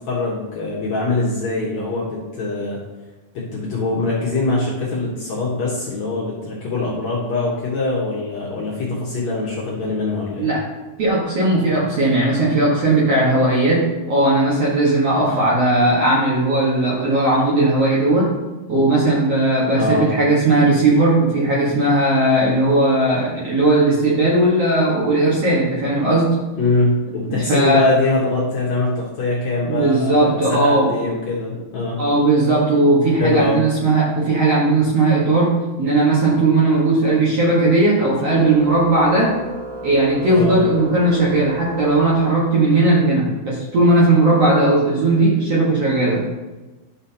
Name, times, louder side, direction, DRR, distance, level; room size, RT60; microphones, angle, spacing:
voice 1, 0.1-2.8 3.3-10.5 19.7-20.1 26.5-32.0 33.2-33.6 40.4-40.6, left 2 dB, 60° left, -5 dB, 2.1 m, -22 dB
voice 2, 11.0-18.3 18.7-26.3 27.3-27.8 29.6-30.9 32.0-35.5 35.8-39.3 39.8-46.2, right 2 dB, 55° right, -6 dB, 1.9 m, -17 dB
Organ, 38.3-42.9, right 2 dB, 70° right, 1.9 m, -34 dB
11.0 x 6.4 x 2.9 m, 1.1 s
omnidirectional pair, 4.5 m